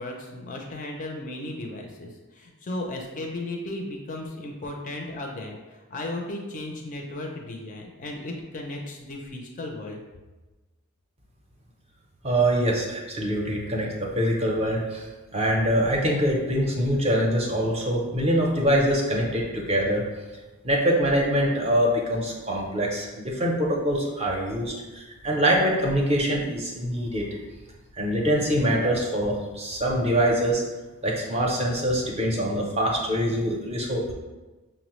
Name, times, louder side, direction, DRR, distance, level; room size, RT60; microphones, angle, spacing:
voice 1, 0.0-10.0, left 2 dB, 35° left, 1 dB, 0.4 m, -35 dB
voice 2, 12.2-20.0 20.6-27.2 28.0-30.6 31.0-34.1, equal, 25° right, -1 dB, 0.5 m, -24 dB
5.5 x 2.0 x 3.0 m, 1.2 s
head